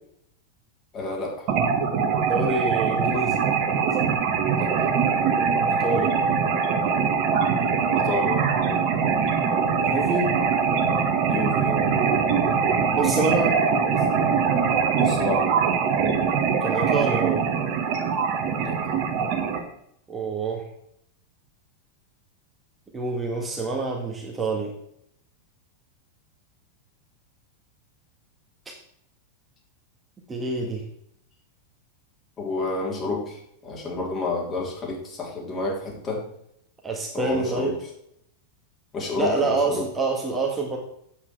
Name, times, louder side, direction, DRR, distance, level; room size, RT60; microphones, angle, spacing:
voice 1, 0.9-1.5 4.5-4.9 7.9-8.5 11.3-11.8 15.0-15.5 18.6-18.8 32.4-36.3 37.1-37.9 38.9-39.9, left 3 dB, 25° left, -2 dB, 3.6 m, -30 dB
sound 1, 1.5-19.6, right 6 dB, 40° right, 1.7 m, -22 dB
voice 2, 2.3-3.4 3.9-4.1 5.8-6.1 9.8-10.3 13.0-13.6 16.6-17.4 20.1-20.7 22.9-24.7 30.3-30.8 36.8-37.8 39.2-40.8, right 3 dB, 15° right, 0 dB, 1.5 m, -26 dB
8.4 x 8.3 x 4.5 m, 0.73 s
figure-of-eight pair, 90°, 0 cm